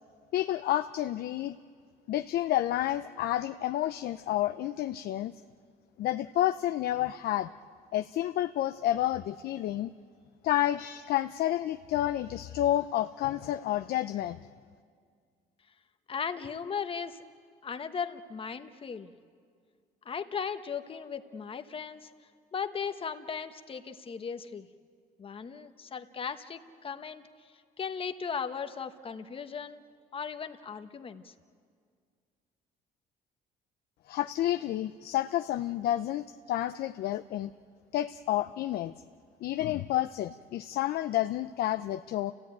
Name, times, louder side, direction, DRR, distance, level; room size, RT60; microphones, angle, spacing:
voice 1, 0.3-1.6 2.1-5.3 6.0-7.5 7.9-9.9 10.4-14.4 34.1-37.5 37.9-38.9 39.4-42.3, left 13 dB, 65° left, 9 dB, 0.6 m, -30 dB
voice 2, 16.1-17.2 17.6-19.1 20.0-22.1 22.5-24.7 25.2-27.2 27.8-29.8 30.1-31.3, left 6 dB, 30° left, 8 dB, 1.2 m, -37 dB
29.5 x 16.5 x 9.3 m, 2.1 s
cardioid pair, 110°, 17 cm